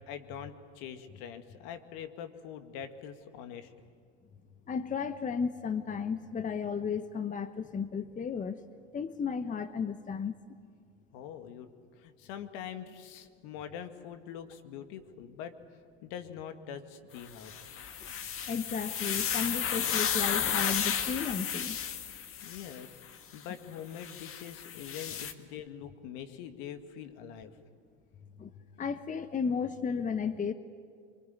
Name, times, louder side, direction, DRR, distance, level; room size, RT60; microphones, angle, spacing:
voice 1, 0.1-3.7 11.1-11.7 12.0-15.5 16.0-17.5 22.4-27.6, left 8 dB, 65° left, 8 dB, 2.1 m, -44 dB
voice 2, 4.7-8.6 8.9-10.4 18.0-18.1 18.5-21.8 28.4-28.5 28.8-30.5, left 6 dB, 25° left, 11 dB, 1.1 m, -34 dB
sound 1, 17.4-22.9 24.0-25.3, left 8 dB, 40° left, 1.8 m, -33 dB
24.0 x 23.5 x 9.6 m, 2.2 s
hypercardioid pair, 95°, 35 cm